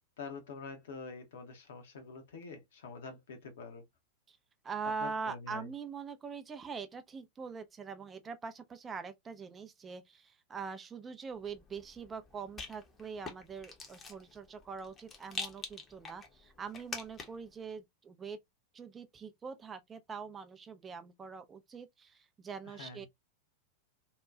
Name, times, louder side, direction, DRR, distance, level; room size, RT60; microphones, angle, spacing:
voice 1, 0.2-3.8 5.0-5.7 22.7-23.1, left 4 dB, 60° left, 0.8 m, -46 dB
voice 2, 4.6-18.4 18.7-23.1, right 5 dB, 20° right, 0.3 m, -43 dB
Rattle, 11.4-17.5, left 4 dB, 25° left, 0.7 m, -46 dB
2.7 x 2.2 x 2.2 m
figure-of-eight pair, 90°, 0 cm